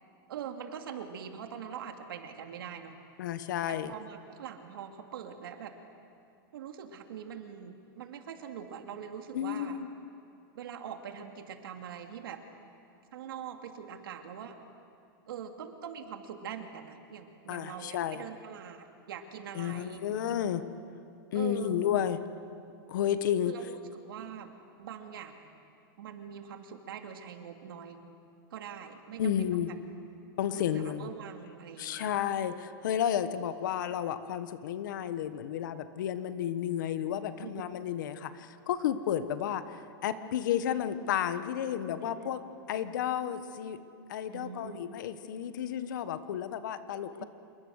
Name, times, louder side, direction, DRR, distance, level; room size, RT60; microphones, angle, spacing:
voice 1, 0.3-3.0 3.7-5.7 6.5-9.8 10.5-12.4 13.1-14.6 15.3-20.0 21.3-21.8 23.4-24.5 24.8-25.4 26.0-28.0 28.5-29.7 30.5-32.1 37.4-37.6 42.0-42.3 44.3-44.8 46.9-47.3, right 8 dB, 70° right, 5 dB, 2.5 m, -43 dB
voice 2, 3.2-3.9 9.3-9.9 17.5-18.2 19.5-20.6 21.3-22.2 22.9-23.5 29.2-29.7 30.4-31.1 31.8-42.4 42.7-43.8 44.1-47.2, left 10 dB, 55° left, 11 dB, 1.3 m, -32 dB
27.5 x 22.5 x 6.5 m, 2.5 s
supercardioid pair, 170°, 12 cm